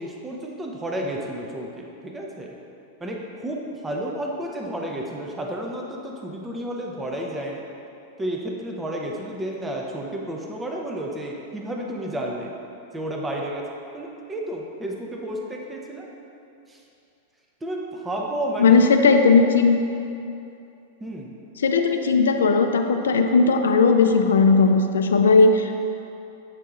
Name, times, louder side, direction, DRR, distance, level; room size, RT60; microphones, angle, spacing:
voice 1, 0.0-2.5 3.0-7.7 8.2-12.5 12.9-13.7 13.9-16.1 16.7-16.8 17.6-18.8 21.0-21.3, right 1 dB, 10° right, -1 dB, 0.5 m, -31 dB
voice 2, 18.6-19.8 21.6-25.7, left 4 dB, 90° left, 5 dB, 0.3 m, -17 dB
7.4 x 2.8 x 2.4 m, 2.7 s
hypercardioid pair, 125°, 0 cm